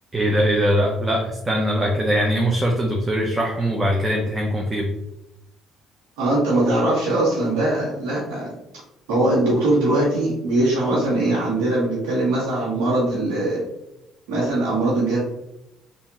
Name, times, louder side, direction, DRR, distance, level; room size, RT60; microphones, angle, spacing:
voice 1, 0.1-4.9, equal, 20° right, -1 dB, 0.7 m, -21 dB
voice 2, 6.2-8.5 9.1-13.6 14.3-15.2, right 2 dB, 85° right, -6 dB, 1.2 m, -21 dB
3.5 x 2.6 x 2.9 m, 0.86 s
supercardioid pair, 80°, 0 cm